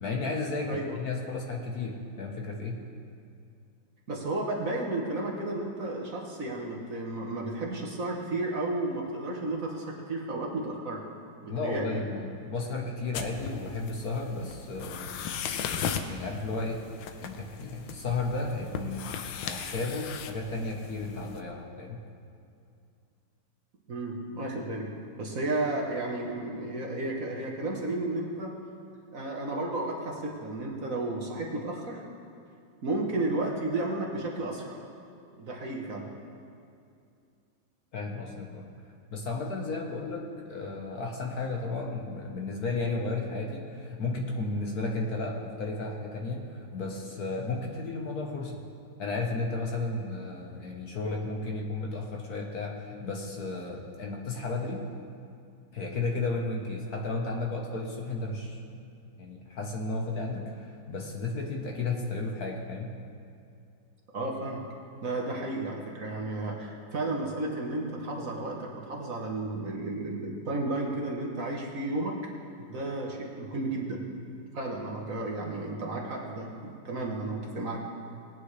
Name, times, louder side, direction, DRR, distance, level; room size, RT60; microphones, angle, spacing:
voice 1, 0.0-2.8 11.5-15.2 16.1-16.8 17.2-19.1 19.4-22.0 37.9-38.6 39.1-48.6 49.0-54.8 55.7-58.8 59.2-62.9, left 3 dB, 55° left, 0 dB, 1.5 m, -33 dB
voice 2, 0.7-1.0 4.1-11.0 11.4-12.0 23.9-24.9 25.2-28.5 29.1-32.0 32.8-34.8 35.4-36.1 64.1-64.6 65.0-72.2 72.6-74.0 74.5-77.8, right 2 dB, 50° right, -1 dB, 1.5 m, -33 dB
sound 1, 13.1-21.4, left 7 dB, 80° left, 1.4 m, -37 dB
20.5 x 9.0 x 3.3 m, 2.5 s
omnidirectional pair, 2.1 m